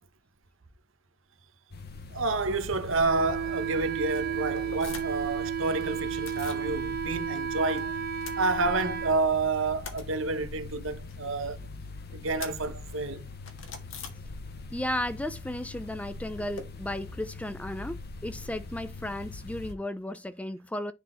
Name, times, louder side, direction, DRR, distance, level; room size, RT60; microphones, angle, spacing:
sound 1, 1.7-19.7, left 3 dB, 50° left, 1.0 m, -42 dB
voice 1, 2.1-7.9 8.4-11.6 12.1-13.3, right 3 dB, 90° right, 1.0 m, -29 dB
Wind instrument woodwind instrument, 3.0-9.2, right 8 dB, 50° right, 0.7 m, -33 dB
sound 2, 4.5-5.3 5.6-6.7 7.0-7.8 8.1-9.1 9.4-14.8 15.0-16.6, left 6 dB, 90° left, 1.6 m, -46 dB
voice 2, 14.7-20.9, left 1 dB, 5° left, 0.4 m, -34 dB
10.0 x 3.9 x 3.8 m
head